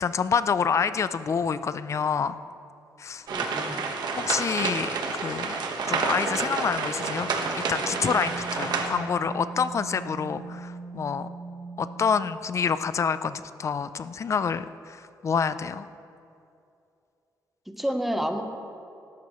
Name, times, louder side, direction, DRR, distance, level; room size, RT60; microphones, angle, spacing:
voice 1, 0.0-2.4 3.0-3.3 4.2-5.6 5.9-7.3 7.6-11.3 11.8-15.9, left 6 dB, 45° left, 13 dB, 0.5 m, -27 dB
voice 2, 3.3-3.8 17.7-18.4, equal, 5° right, 5 dB, 1.0 m, -29 dB
sound 1, 3.3-8.9, right 4 dB, 75° right, 1.3 m, -29 dB
sound 2, 6.4-12.4, right 3 dB, 60° left, 3.2 m, -40 dB
19.0 x 11.5 x 3.1 m, 2.6 s
cardioid pair, 115°, 7 cm